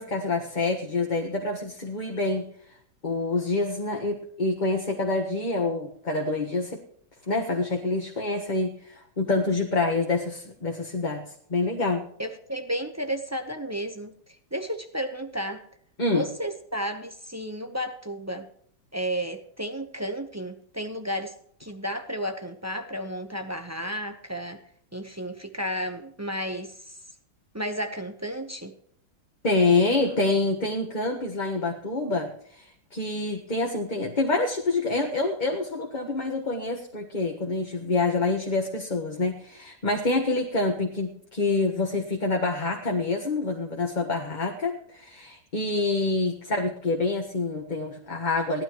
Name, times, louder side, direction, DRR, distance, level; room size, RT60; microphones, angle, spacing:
voice 1, 0.0-2.4 3.0-6.8 7.3-11.2 11.5-12.1 16.0-16.3 29.4-48.6, left 3 dB, 25° left, 1 dB, 1.4 m, -27 dB
voice 2, 12.2-14.1 14.5-15.6 16.1-18.5 18.9-21.3 21.6-24.6 24.9-26.9 27.5-28.7, equal, 15° right, 5 dB, 0.5 m, -32 dB
18.0 x 12.5 x 3.1 m, 0.63 s
omnidirectional pair, 2.1 m